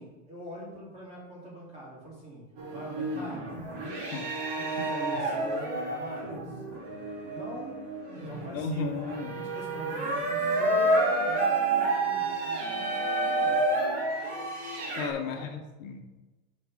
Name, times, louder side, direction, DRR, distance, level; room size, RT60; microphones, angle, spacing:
voice 1, 0.0-3.5 4.5-6.6 7.2-9.0 9.3-13.6 15.3-15.5, equal, 15° right, -5 dB, 2.7 m, -43 dB
sound 1, 2.6-15.1, right 2 dB, 35° right, 2.0 m, -29 dB
voice 2, 3.9-4.3 4.8-4.9 8.5-9.4 15.0-16.0, left 5 dB, 75° left, 5 dB, 1.2 m, -35 dB
7.6 x 4.4 x 6.3 m, 1.1 s
supercardioid pair, 175°, 40 cm